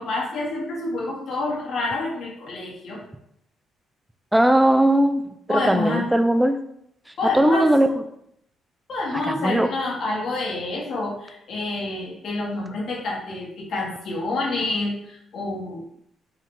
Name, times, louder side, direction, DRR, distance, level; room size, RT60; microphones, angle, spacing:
voice 1, 0.0-3.0 5.5-6.1 7.2-7.7 8.9-15.8, left 2 dB, 65° left, -2 dB, 1.4 m, -28 dB
voice 2, 4.3-6.6 7.3-7.9 9.1-9.7, right 1 dB, 5° right, 8 dB, 0.3 m, -19 dB
4.6 x 2.4 x 3.7 m, 0.75 s
cardioid pair, 90°, 0 cm